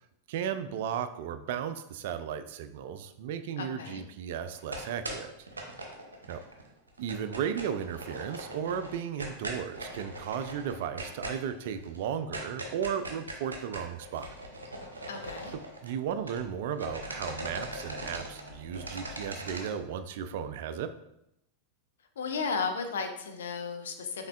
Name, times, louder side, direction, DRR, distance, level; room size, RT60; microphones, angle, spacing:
voice 1, 0.3-5.3 6.3-6.4 7.0-14.3 15.8-20.9, right 8 dB, 55° right, 10 dB, 0.3 m, -35 dB
voice 2, 3.6-4.0 15.1-15.5 22.2-24.3, left 5 dB, 65° left, 5 dB, 0.5 m, -34 dB
sound 1, 4.5-6.6 6.9-16.5 16.7-19.7, right 1 dB, 75° right, 0.7 m, -40 dB
5.3 x 3.6 x 2.3 m, 0.81 s
figure-of-eight pair, 90°, 0 cm